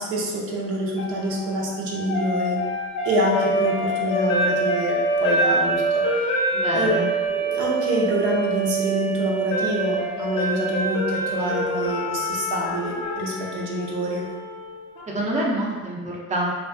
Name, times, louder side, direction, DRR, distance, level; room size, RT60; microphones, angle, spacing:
voice 1, 0.0-2.6 3.0-6.4 6.7-7.0 7.3-14.3, right 1 dB, 80° right, -3 dB, 0.6 m, -26 dB
sound 1, 1.0-15.1, right 1 dB, 80° left, 0.6 m, -26 dB
voice 2, 6.5-7.1 15.1-16.6, right 1 dB, 25° right, -3 dB, 0.5 m, -26 dB
2.5 x 2.3 x 2.5 m, 1.5 s
cardioid pair, 90°, 30 cm